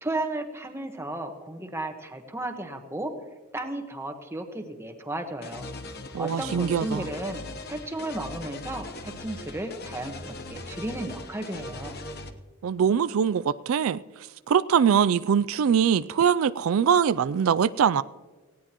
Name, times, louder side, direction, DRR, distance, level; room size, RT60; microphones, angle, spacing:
voice 1, 0.0-3.1 3.5-5.6 6.2-11.9, right 1 dB, 10° right, 1.3 m, -34 dB
sound 1, 5.4-12.3, left 2 dB, 45° left, 1.0 m, -40 dB
voice 2, 6.1-7.1 12.6-14.0 14.5-18.0, right 7 dB, 75° right, 0.4 m, -22 dB
19.0 x 16.0 x 3.0 m
head